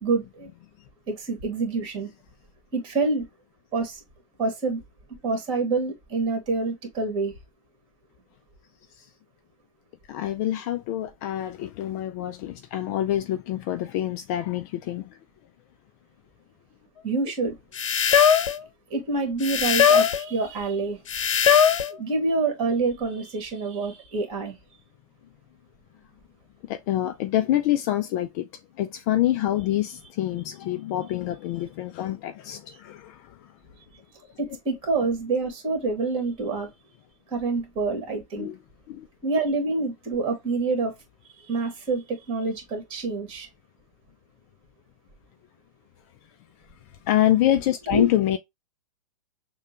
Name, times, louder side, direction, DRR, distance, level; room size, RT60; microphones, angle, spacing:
voice 1, 0.0-0.5 1.1-2.1 2.7-3.3 3.7-4.0 4.4-4.8 5.2-7.3 17.0-17.6 18.9-21.0 22.0-24.5 34.4-36.7 37.3-38.5 39.2-40.9 41.4-43.5 47.9-48.1, right 3 dB, 30° right, 1.8 m, -27 dB
voice 2, 10.1-15.2 26.6-28.5 28.8-33.5 38.4-38.6 38.9-39.1 47.0-48.4, left 13 dB, 30° left, 0.4 m, -26 dB
sound 1, 17.8-18.6 19.4-20.2 21.1-21.9, left 8 dB, 60° left, 0.8 m, -19 dB
6.5 x 2.2 x 2.9 m
figure-of-eight pair, 110°, 18 cm